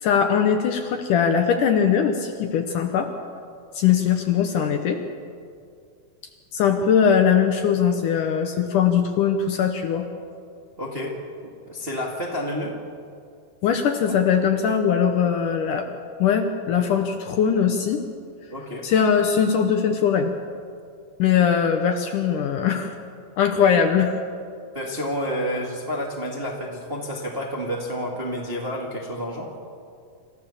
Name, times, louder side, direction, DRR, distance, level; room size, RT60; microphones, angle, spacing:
voice 1, 0.0-3.1 3.7-5.0 6.5-10.1 13.6-18.0 18.8-20.3 21.2-22.9 23.4-24.2, left 7 dB, 70° left, 5 dB, 2.2 m, -21 dB
voice 2, 10.8-11.1 11.4-12.7 18.5-18.8 24.7-29.5, equal, 25° right, -2 dB, 1.4 m, -29 dB
26.5 x 14.5 x 7.2 m, 2.3 s
omnidirectional pair, 4.5 m